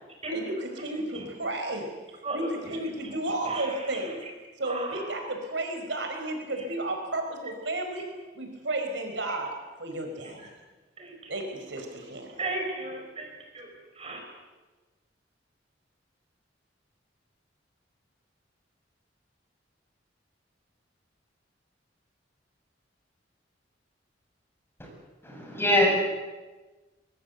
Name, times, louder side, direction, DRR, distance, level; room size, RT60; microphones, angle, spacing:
voice 1, 0.3-1.9 2.3-4.2 4.6-8.1 8.3-10.4 11.3-12.3, right 2 dB, 70° right, 4 dB, 5.0 m, -33 dB
voice 2, 2.2-2.7 3.4-4.1 4.6-5.0 10.2-10.3 11.0-11.3 12.4-14.2, right 2 dB, 35° right, 3 dB, 5.3 m, -36 dB
voice 3, 25.2-25.9, left 1 dB, 15° left, -1 dB, 7.9 m, -23 dB
24.0 x 22.5 x 8.2 m, 1.2 s
head